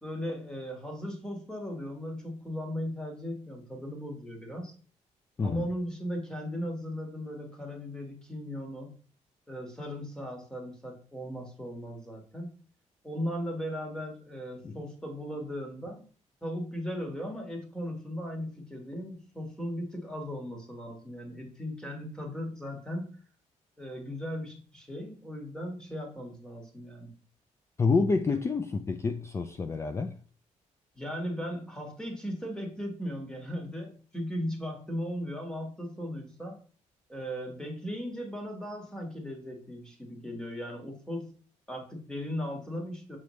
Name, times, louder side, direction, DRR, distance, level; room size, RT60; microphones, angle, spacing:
voice 1, 0.0-4.7 5.4-8.9 9.5-12.5 13.0-16.1 16.4-23.2 23.8-27.1 30.9-36.5 37.1-41.3 41.7-43.2, equal, 5° left, 1.6 m, -37 dB
voice 2, 5.4-5.7 14.6-14.8 27.8-30.2, left 4 dB, 20° left, 0.4 m, -28 dB
6.9 x 5.0 x 3.1 m
cardioid pair, 150°, 12 cm